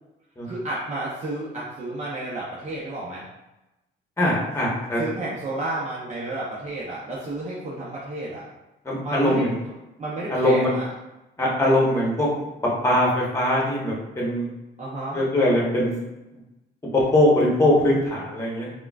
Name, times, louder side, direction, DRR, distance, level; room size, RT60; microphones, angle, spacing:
voice 1, 0.4-3.2 5.0-8.5 9.0-9.4 10.0-10.9 14.8-15.3, right 2 dB, 35° right, -7 dB, 0.7 m, -31 dB
voice 2, 4.2-5.0 8.8-9.6 10.3-10.7 11.4-12.3 12.6-14.5 15.1-15.9 16.9-18.7, left 1 dB, 15° left, -4 dB, 1.0 m, -21 dB
3.7 x 2.2 x 2.4 m, 0.98 s
cardioid pair, 90°, 20 cm